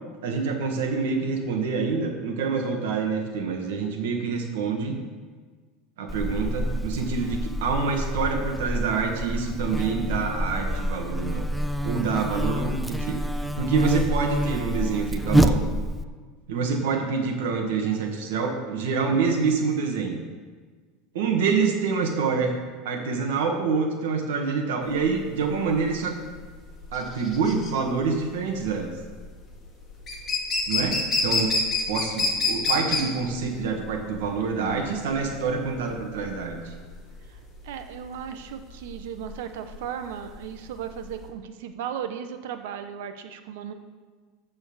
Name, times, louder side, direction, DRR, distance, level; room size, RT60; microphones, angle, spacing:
voice 1, 0.2-5.0 6.0-11.5 11.8-15.6 16.5-20.2 21.1-22.5 22.9-26.2 26.9-28.9 30.7-31.0 31.2-31.5 31.9-36.7, right 5 dB, 90° right, 2 dB, 1.7 m, -26 dB
Buzz, 6.1-16.0, equal, ahead, 0.4 m, -27 dB
sound 1, 24.9-41.3, left 3 dB, 20° left, 1.8 m, -29 dB
voice 2, 37.6-43.7, right 8 dB, 75° right, 8 dB, 1.0 m, -36 dB
13.0 x 4.4 x 7.2 m, 1.5 s
supercardioid pair, 165°, 0 cm